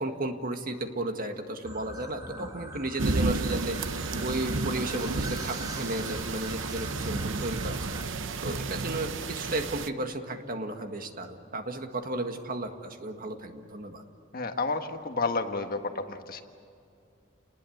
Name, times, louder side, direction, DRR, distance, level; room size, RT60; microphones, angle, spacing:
voice 1, 0.0-3.8 4.2-8.0 8.4-14.0, right 2 dB, 45° right, 6 dB, 1.8 m, -34 dB
sound 1, 1.6-8.0, right 1 dB, 20° right, 2.4 m, -41 dB
sound 2, 3.0-9.9, right 3 dB, 70° right, 0.8 m, -32 dB
voice 2, 14.3-16.4, left 3 dB, 50° left, 6 dB, 1.5 m, -31 dB
29.5 x 20.0 x 8.0 m, 2.4 s
head